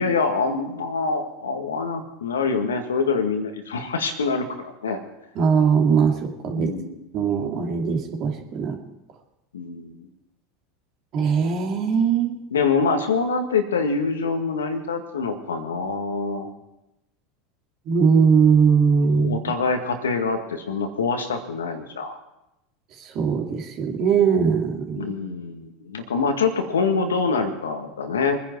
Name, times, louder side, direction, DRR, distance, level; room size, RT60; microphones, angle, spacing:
voice 1, 0.0-5.0 6.6-7.0 9.5-10.1 12.5-16.5 19.1-22.2 24.9-28.4, left 4 dB, 80° left, 5 dB, 1.8 m, -25 dB
voice 2, 5.4-6.7 7.1-8.8 11.1-12.4 17.9-19.4 23.0-25.1, right 6 dB, 50° right, 2 dB, 2.7 m, -20 dB
24.0 x 10.0 x 4.6 m, 0.88 s
hypercardioid pair, 80°, 0 cm